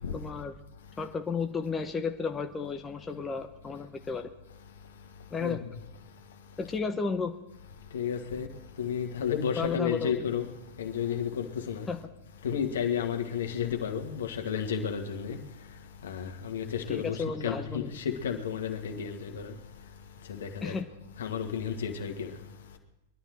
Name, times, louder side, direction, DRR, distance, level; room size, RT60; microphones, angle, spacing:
voice 1, 0.1-0.5 1.0-4.3 5.3-5.6 6.6-7.3 9.6-10.3 11.9-12.0 16.9-17.9 20.6-20.8, left 5 dB, 15° left, 1.0 m, -33 dB
voice 2, 7.9-8.5 8.8-10.5 10.8-11.9 12.4-15.4 16.0-19.5 20.3-20.7 21.2-22.3, left 7 dB, 70° left, 1.8 m, -32 dB
22.0 x 11.5 x 4.6 m
figure-of-eight pair, 100°, 0 cm